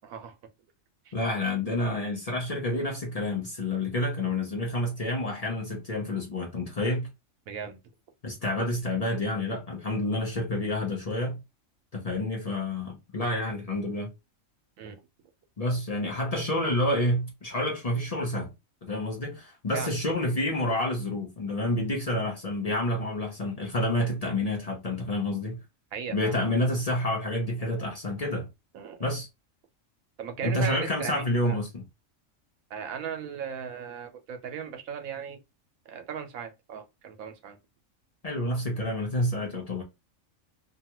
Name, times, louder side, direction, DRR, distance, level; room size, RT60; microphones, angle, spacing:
voice 1, 0.0-0.3 1.0-1.1 7.5-7.8 14.8-15.0 19.7-19.9 25.9-26.4 28.7-29.1 30.2-31.6 32.7-35.4 35.9-37.6, right 7 dB, 85° right, 1.1 m, -37 dB
voice 2, 1.1-7.1 8.2-11.4 11.9-14.1 15.6-18.5 18.8-25.6 26.1-28.5 29.0-29.3 30.4-31.8 38.2-39.8, left 1 dB, 40° left, 0.5 m, -29 dB
2.9 x 2.3 x 2.8 m
omnidirectional pair, 1.4 m